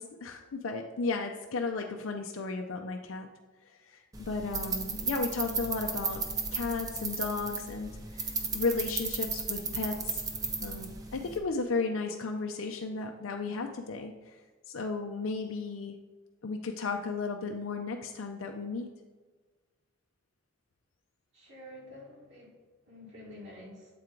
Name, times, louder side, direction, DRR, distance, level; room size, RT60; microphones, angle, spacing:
voice 1, 0.0-3.3 3.9-6.2 6.5-10.2 10.6-14.1 14.7-16.0 16.4-18.9, left 4 dB, 75° left, 3 dB, 0.5 m, -34 dB
sound 1, 4.1-11.4, right 4 dB, 20° right, 0.6 m, -35 dB
voice 2, 21.3-22.5 22.9-23.9, left 1 dB, 60° right, -4 dB, 1.6 m, -48 dB
7.7 x 4.5 x 3.7 m, 1.3 s
head